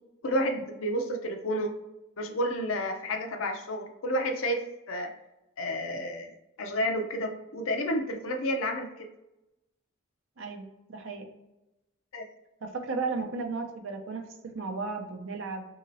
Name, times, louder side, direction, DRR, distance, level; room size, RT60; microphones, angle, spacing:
voice 1, 0.2-1.7 2.2-5.1 5.6-6.3 6.6-9.1 12.1-12.2, equal, 75° left, 4 dB, 0.5 m, -30 dB
voice 2, 10.4-11.3 12.6-15.7, right 4 dB, 65° right, 3 dB, 0.6 m, -35 dB
2.9 x 2.8 x 2.6 m, 0.93 s
head